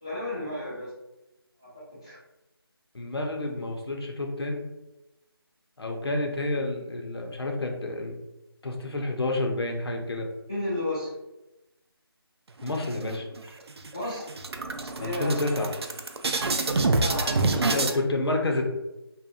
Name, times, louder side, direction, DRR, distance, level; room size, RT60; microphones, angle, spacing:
voice 1, 0.0-0.9 1.6-2.2 10.5-11.1 13.9-14.4 15.0-15.3 16.9-17.6, left 1 dB, 10° left, -11 dB, 0.3 m, -33 dB
voice 2, 2.9-4.6 5.8-8.2 8.6-10.3 12.6-13.3 15.0-15.7 17.5-18.7, left 2 dB, 75° left, 1 dB, 0.6 m, -29 dB
sound 1, 12.6-13.4 13.8-13.9 14.2-18.0, right 3 dB, 80° right, 0.4 m, -27 dB
2.7 x 2.1 x 2.4 m, 0.97 s
figure-of-eight pair, 170°, 13 cm